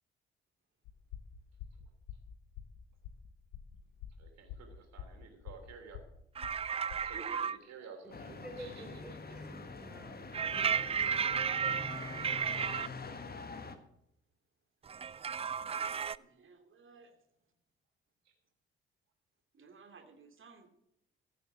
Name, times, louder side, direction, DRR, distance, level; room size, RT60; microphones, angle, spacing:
sound 1, 0.8-7.2, left 9 dB, 70° left, 1.1 m, -48 dB
voice 1, 4.2-6.0 7.0-9.0 9.3-9.4 18.2-18.3, right 5 dB, 60° right, 4 dB, 3.2 m, -53 dB
sound 2, 6.4-7.6 10.3-12.9 14.9-16.2, right 7 dB, 20° right, 0.4 m, -33 dB
voice 2, 8.0-11.2, right 1 dB, 5° right, 4 dB, 3.8 m, -51 dB
sound 3, 8.1-13.8, left 3 dB, 30° left, 1.6 m, -45 dB
voice 3, 16.2-17.2 19.5-20.7, right 4 dB, 40° right, 6 dB, 2.5 m, -55 dB
15.5 x 7.6 x 6.1 m, 0.79 s
figure-of-eight pair, 45°, 30 cm